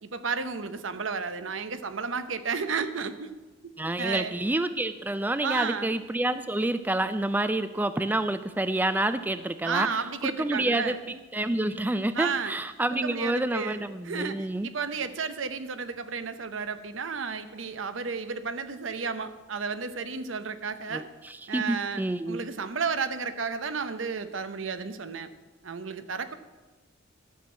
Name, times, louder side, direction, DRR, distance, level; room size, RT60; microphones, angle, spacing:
voice 1, 0.0-3.3 3.6-3.7 4.0-4.4 5.4-6.0 9.6-11.2 12.1-12.5 13.0-21.1 21.5-25.3 25.6-26.3, right 5 dB, 80° right, 11 dB, 0.8 m, -32 dB
voice 2, 3.8-9.9 10.2-10.9 11.3-14.7 20.9-22.4, right 1 dB, 10° right, 12 dB, 0.3 m, -28 dB
12.5 x 6.2 x 7.5 m, 1.2 s
head